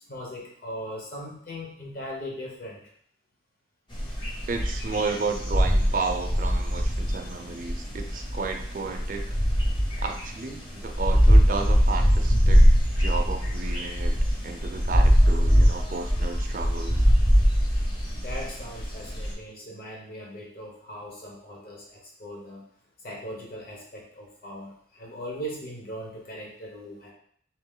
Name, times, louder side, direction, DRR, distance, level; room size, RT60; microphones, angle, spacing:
voice 1, 0.1-2.9 18.2-22.6 23.0-27.1, equal, 55° left, -1 dB, 1.1 m, -39 dB
sound 1, 3.9-19.3, equal, 25° left, 0.7 m, -22 dB
voice 2, 4.5-9.4 10.0-14.2 14.4-17.0, right 4 dB, 45° right, 4 dB, 0.4 m, -33 dB
3.3 x 3.0 x 3.7 m, 0.62 s
head